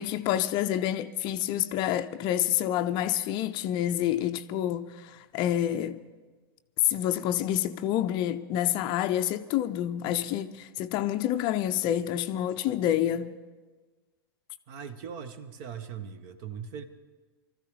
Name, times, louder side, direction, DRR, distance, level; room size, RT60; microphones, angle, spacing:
voice 1, 0.0-6.0 6.8-13.3, left 11 dB, 35° left, 0.5 m, -28 dB
voice 2, 14.7-16.9, right 7 dB, 45° right, 1.1 m, -40 dB
24.5 x 14.0 x 3.4 m
figure-of-eight pair, 95°, 13 cm